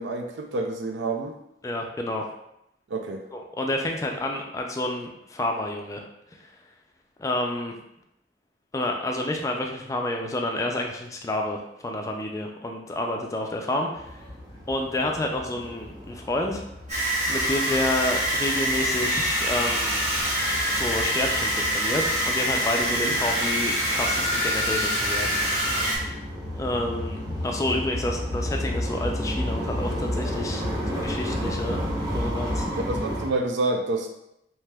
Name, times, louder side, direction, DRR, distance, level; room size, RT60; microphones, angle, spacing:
voice 1, 0.0-1.3 2.9-3.2 22.9-23.2 32.9-34.1, right 2 dB, 90° right, 3 dB, 0.5 m, -28 dB
voice 2, 1.6-2.3 3.3-6.0 6.3-6.4 7.2-7.8 8.7-14.2 14.7-16.6 17.3-20.0 20.7-25.4 25.9-26.1 26.5-31.8 32.1-32.7, left 1 dB, 20° left, 2 dB, 0.3 m, -29 dB
sound 1, 13.9-33.3, equal, 20° right, 0.8 m, -33 dB
sound 2, 16.9-26.0, equal, 40° right, 1.1 m, -25 dB
3.3 x 2.8 x 2.2 m, 0.80 s
head